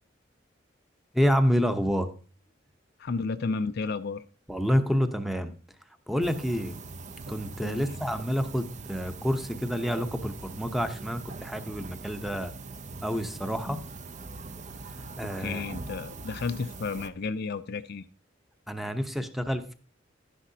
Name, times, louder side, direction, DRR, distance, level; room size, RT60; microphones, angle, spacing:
voice 1, 1.1-2.1 4.5-5.5 6.1-6.8 7.3-12.5 13.0-13.8 15.2-15.6 18.7-19.7, equal, ahead, 0.8 m, -28 dB
voice 2, 3.0-4.2 7.6-7.9 15.0-18.0, left 4 dB, 55° left, 0.5 m, -32 dB
sound 1, 6.2-17.1, right 3 dB, 40° right, 0.6 m, -42 dB
11.5 x 10.0 x 2.8 m
head